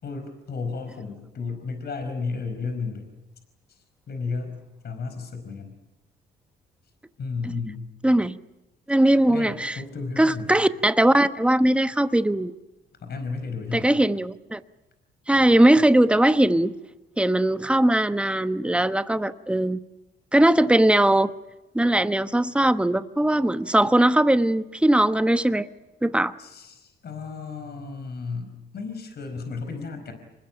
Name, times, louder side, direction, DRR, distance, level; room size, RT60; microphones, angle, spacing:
voice 1, 0.0-3.1 3.7-4.5 4.8-5.7 7.2-7.9 9.1-10.6 13.0-13.9 26.4-30.1, left 4 dB, 55° left, 7 dB, 4.8 m, -33 dB
voice 2, 8.0-8.4 8.9-9.7 10.2-12.5 13.7-14.6 15.3-16.7 17.2-19.8 20.3-21.3 21.7-25.7 26.0-26.3, right 1 dB, 5° right, 11 dB, 1.0 m, -20 dB
26.5 x 20.5 x 9.1 m, 1.0 s
cardioid pair, 90°, 20 cm